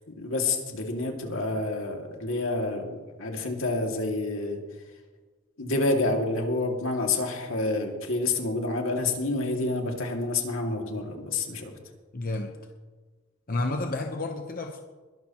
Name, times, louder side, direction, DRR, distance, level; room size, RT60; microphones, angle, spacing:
voice 1, 0.0-4.6 5.6-11.7, left 2 dB, 85° left, 1 dB, 2.3 m, -28 dB
voice 2, 12.1-12.6 13.5-14.8, left 2 dB, 45° left, 4 dB, 0.9 m, -30 dB
21.5 x 12.5 x 3.0 m, 1.3 s
head